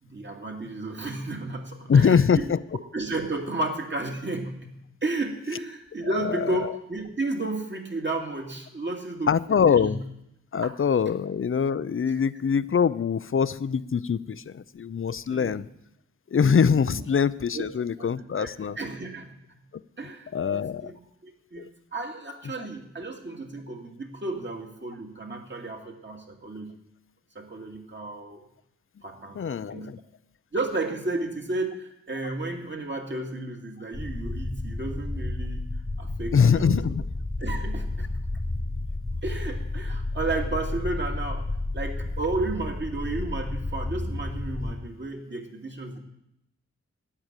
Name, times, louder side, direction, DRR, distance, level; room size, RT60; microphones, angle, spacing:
voice 1, 0.0-2.5 2.9-4.7 5.0-9.3 9.7-10.0 10.6-10.7 15.3-15.5 16.9-17.0 17.5-17.7 18.0-18.1 18.4-19.6 20.0-26.7 27.3-28.4 29.0-29.9 30.5-35.6 36.0-36.9 37.4-38.1 39.2-41.5 41.7-46.0, right 2 dB, 40° right, 2 dB, 2.5 m, -33 dB
voice 2, 1.9-2.6 6.1-6.7 9.3-10.0 10.5-15.7 16.3-18.8 20.3-20.9 21.6-21.7 29.4-30.0 36.3-37.0, left 6 dB, 45° left, 17 dB, 0.6 m, -23 dB
sound 1, 33.9-44.7, left 2 dB, 15° left, 1.1 m, -31 dB
13.0 x 9.9 x 9.1 m, 0.81 s
wide cardioid pair, 110°, 29 cm